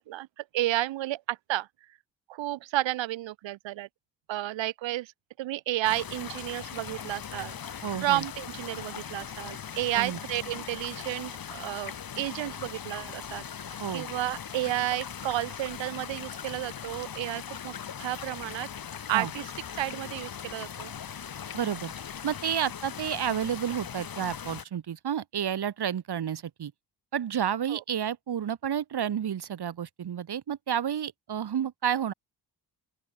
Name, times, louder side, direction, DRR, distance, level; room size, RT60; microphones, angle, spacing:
voice 1, 0.0-1.7 2.3-3.9 4.3-5.1 5.4-7.6 8.0-17.7 18.0-18.7 19.1-20.9 27.7-27.8, right 15 dB, 80° right, 0.8 m, -32 dB
sound 1, 5.8-24.6, left 8 dB, 50° left, 1.7 m, -40 dB
voice 2, 7.8-8.2 10.0-10.2 13.8-14.1 19.1-19.3 21.5-21.9 22.2-26.7 27.1-32.1, right 9 dB, 60° right, 1.9 m, -30 dB
open air
cardioid pair, 75°, 45 cm